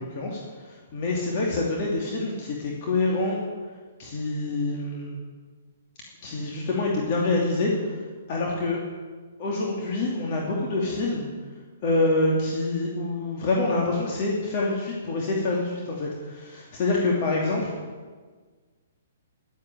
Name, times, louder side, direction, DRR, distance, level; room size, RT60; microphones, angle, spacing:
voice 1, 0.0-3.4 4.0-5.2 6.2-8.0 8.3-8.8 9.4-11.3 11.8-17.7, left 2 dB, 45° left, -2 dB, 2.8 m, -26 dB
11.0 x 10.0 x 9.2 m, 1.5 s
hypercardioid pair, 135°, 0 cm